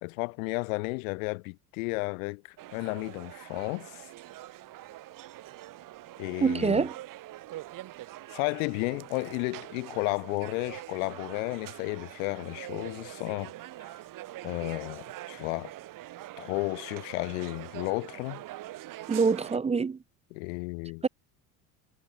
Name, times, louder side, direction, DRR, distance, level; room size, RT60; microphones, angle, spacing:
voice 1, 0.0-2.4 2.7-4.0 6.2-6.9 8.3-13.5 14.4-15.7 16.4-18.4 20.3-21.0, left 28 dB, 85° left, 1.7 m, -33 dB
sound 1, 2.6-19.6, right 15 dB, 55° right, 2.4 m, -44 dB
voice 2, 6.4-6.9 19.1-20.0 21.0-21.1, right 5 dB, 15° right, 0.6 m, -25 dB
supercardioid pair, 115°, 40 cm